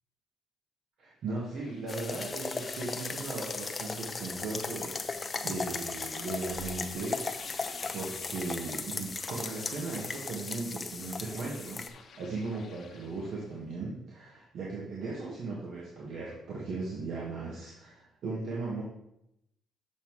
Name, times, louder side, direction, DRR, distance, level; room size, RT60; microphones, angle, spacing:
voice 1, 1.0-7.6 7.9-18.8, right 3 dB, 70° right, -4 dB, 1.7 m, -37 dB
sound 1, 1.3-13.6, left 6 dB, 65° left, 1.0 m, -53 dB
sound 2, 1.9-11.9, left 4 dB, 35° left, 0.7 m, -37 dB
7.2 x 5.6 x 4.7 m, 0.82 s
cardioid pair, 90°, 0 cm